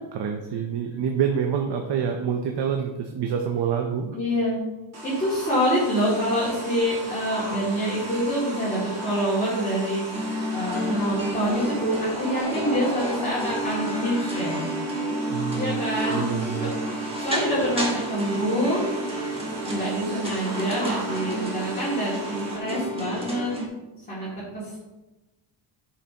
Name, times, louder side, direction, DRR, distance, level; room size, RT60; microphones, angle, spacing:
voice 1, 0.1-4.2 15.3-15.8 16.1-16.7, right 7 dB, 60° right, 3 dB, 0.8 m, -27 dB
voice 2, 4.1-4.6 5.0-14.6 15.5-16.2 16.6-16.7 17.2-19.0 19.7-23.5 24.1-24.8, equal, 20° left, -10 dB, 2.5 m, -26 dB
sound 1, 4.9-22.6, right 1 dB, 35° right, 2.0 m, -36 dB
sound 2, 10.1-23.7, right 1 dB, 10° right, 1.3 m, -31 dB
sound 3, 10.3-15.1, left 1 dB, 45° left, 1.4 m, -37 dB
11.0 x 5.9 x 2.9 m, 1.1 s
cardioid pair, 160°, 46 cm